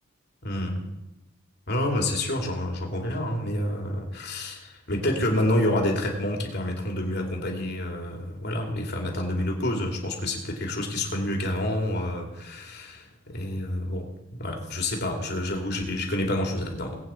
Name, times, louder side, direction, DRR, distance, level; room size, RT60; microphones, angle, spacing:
voice 1, 0.4-0.8 1.7-14.1 14.3-17.0, left 1 dB, 55° left, 1 dB, 2.8 m, -28 dB
20.5 x 8.6 x 4.5 m, 1.0 s
head